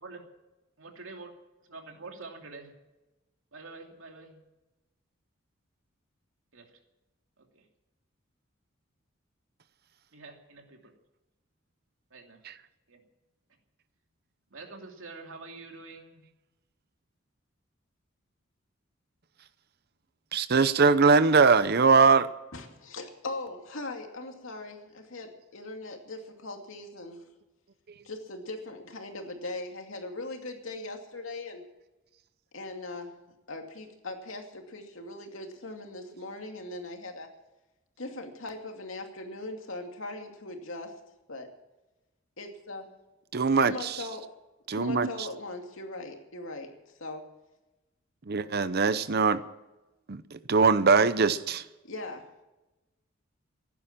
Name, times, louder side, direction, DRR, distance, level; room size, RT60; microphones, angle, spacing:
voice 1, 0.8-1.3 1.7-2.7 3.5-4.4 6.5-6.7 7.4-7.6 10.1-10.9 12.1-12.4 12.9-13.0 14.5-16.2, right 3 dB, 75° right, 3 dB, 2.8 m, -46 dB
voice 2, 20.3-22.3 43.3-44.0 44.7-45.1 48.3-49.4 50.1-51.6, right 4 dB, 50° right, 14 dB, 0.7 m, -22 dB
voice 3, 22.5-27.2 28.0-31.6 32.5-33.1 33.5-37.3 38.0-40.9 41.3-41.5 42.4-42.9 43.5-44.3 44.7-46.7 47.0-47.2 51.8-52.3, left 2 dB, 75° left, 4 dB, 2.5 m, -40 dB
16.0 x 11.0 x 7.4 m, 1.0 s
head